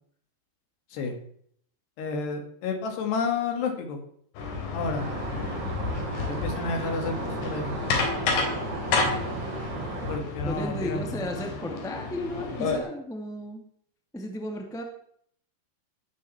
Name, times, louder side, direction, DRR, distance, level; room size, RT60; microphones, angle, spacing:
voice 1, 2.0-4.0 4.7-5.0 6.3-7.7 10.1-11.4, left 4 dB, 70° left, 4 dB, 4.5 m, -31 dB
sound 1, 4.4-12.8, left 4 dB, 85° left, 5.7 m, -31 dB
sound 2, 5.0-10.2, right 3 dB, 65° right, 1.1 m, -35 dB
voice 2, 10.4-13.6 14.1-14.8, left 1 dB, ahead, 2 dB, 0.7 m, -34 dB
19.0 x 7.9 x 7.3 m, 0.65 s
omnidirectional pair, 5.0 m